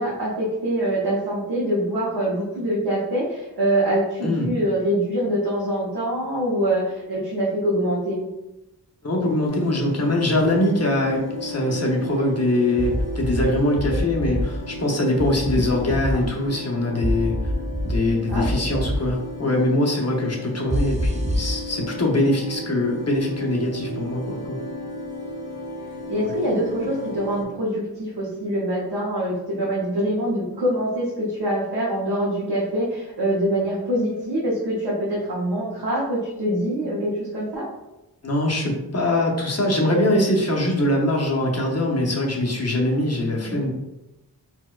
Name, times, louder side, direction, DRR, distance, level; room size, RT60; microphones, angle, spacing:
voice 1, 0.0-8.2 15.5-16.2 18.3-19.1 26.1-37.7 43.4-43.7, right 1 dB, 90° right, -7 dB, 0.8 m, -25 dB
voice 2, 4.2-4.5 9.0-17.3 17.8-24.6 38.2-43.7, left 1 dB, 40° left, -1 dB, 0.7 m, -22 dB
sound 1, 9.5-27.4, left 1 dB, 75° left, 0.7 m, -35 dB
sound 2, 12.8-13.4 13.8-14.4 15.2-16.1 17.0-18.0 18.3-19.0 20.7-21.5, equal, 20° right, 0.4 m, -25 dB
4.1 x 2.2 x 2.3 m, 0.95 s
wide cardioid pair, 50°, 39 cm